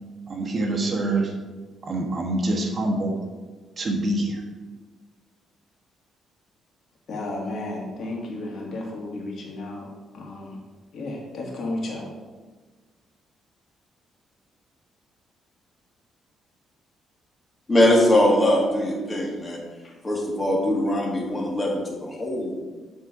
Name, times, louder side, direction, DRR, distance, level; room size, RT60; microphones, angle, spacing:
voice 1, 0.3-1.3 1.8-3.2 3.8-4.4, right 2 dB, 40° right, 1 dB, 1.3 m, -25 dB
voice 2, 7.1-9.9 10.1-10.5 10.9-12.0, left 2 dB, 60° left, -1 dB, 1.8 m, -33 dB
voice 3, 17.7-19.6 20.0-22.5, left 1 dB, 25° left, -1 dB, 2.0 m, -21 dB
9.7 x 3.8 x 4.8 m, 1.3 s
cardioid pair, 90°, 0 cm